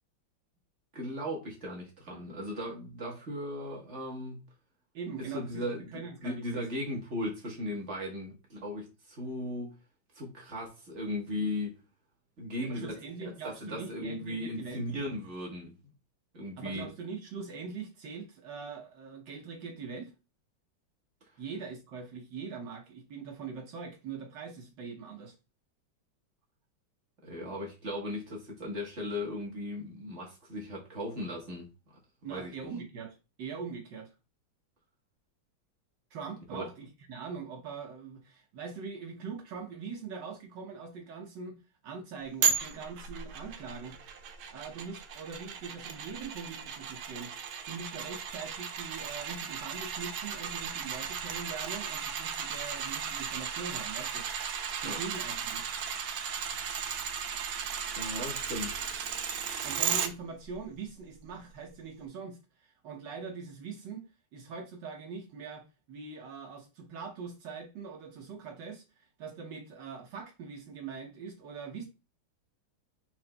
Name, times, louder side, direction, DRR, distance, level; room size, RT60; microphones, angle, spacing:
voice 1, 0.9-4.4 5.2-9.7 10.1-11.8 12.4-13.0 13.2-15.7 16.3-16.9 27.2-31.7 32.3-32.5 36.5-36.7 54.8-55.0 57.9-58.8, left 1 dB, 40° right, 1.4 m, -37 dB
voice 2, 4.9-6.6 12.6-14.9 16.6-20.1 21.4-25.3 32.2-34.1 36.1-41.6 41.8-44.0 44.5-47.3 47.7-54.3 54.8-55.7 59.6-64.0 64.3-71.9, right 5 dB, 65° right, 1.4 m, -42 dB
sound 1, 42.4-60.1 60.5-60.6, right 7 dB, 85° right, 1.5 m, -35 dB
5.0 x 4.4 x 2.2 m
omnidirectional pair, 2.2 m